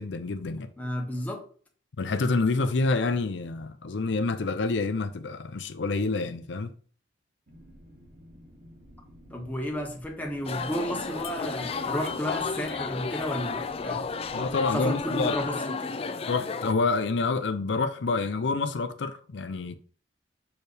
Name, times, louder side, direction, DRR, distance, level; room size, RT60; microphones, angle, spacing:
voice 1, 0.0-0.7 2.0-6.7 14.3-15.4 16.3-19.8, left 3 dB, 85° left, 0.6 m, -28 dB
voice 2, 0.8-1.5 9.3-14.1 14.7-16.0, equal, 10° left, 1.2 m, -32 dB
sound 1, 7.5-15.5, equal, 70° right, 2.9 m, -52 dB
sound 2, 10.4-16.7, left 4 dB, 35° left, 0.4 m, -32 dB
6.6 x 4.5 x 3.4 m
head